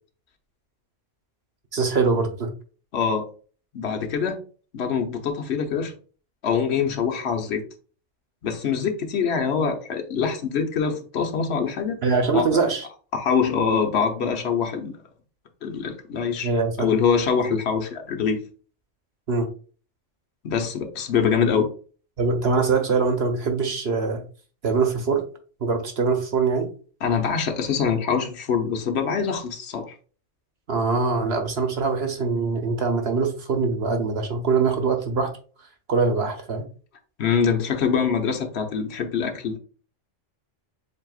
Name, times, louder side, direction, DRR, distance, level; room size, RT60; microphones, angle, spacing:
voice 1, 1.7-2.5 12.0-12.8 16.4-16.8 19.3-19.5 22.2-24.2 24.6-25.2 25.6-26.7 30.7-35.3 35.9-36.7, right 4 dB, 55° right, 5 dB, 1.1 m, -23 dB
voice 2, 2.9-3.3 3.7-4.4 4.7-5.9 6.4-7.6 8.4-12.0 12.3-12.6 13.1-14.9 15.6-16.5 16.8-18.4 20.4-21.7 27.0-29.9 37.2-39.6, left 6 dB, 60° left, 4 dB, 1.1 m, -24 dB
7.4 x 2.9 x 2.4 m, 0.39 s
omnidirectional pair, 1.3 m